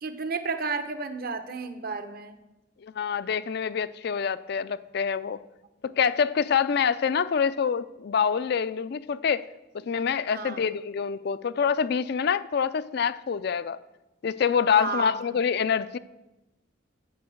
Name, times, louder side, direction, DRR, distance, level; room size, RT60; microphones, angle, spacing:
voice 1, 0.0-2.4 10.3-10.6 14.7-15.3, right 4 dB, 50° right, 9 dB, 0.8 m, -32 dB
voice 2, 2.8-5.4 5.8-9.4 9.7-13.8 14.2-16.0, left 6 dB, 55° left, 15 dB, 0.4 m, -26 dB
9.4 x 7.0 x 7.7 m, 1.0 s
head